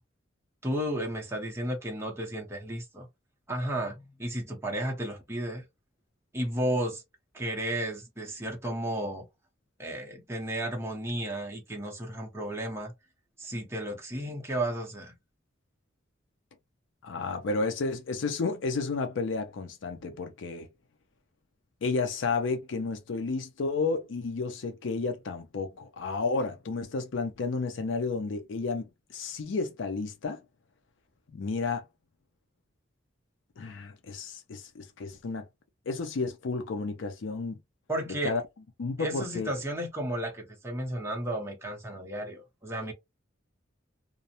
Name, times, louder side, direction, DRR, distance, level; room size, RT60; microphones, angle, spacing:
voice 1, 0.6-3.1 3.5-5.6 6.3-7.0 7.3-9.2 9.8-12.9 13.4-15.1 37.9-38.3 39.0-42.9, right 1 dB, 15° right, 0.7 m, -33 dB
voice 2, 17.0-20.7 21.8-30.4 31.3-31.9 33.6-35.5 35.9-37.6 38.2-38.4 38.8-39.5, left 4 dB, 70° left, 0.4 m, -32 dB
2.5 x 2.0 x 2.8 m
head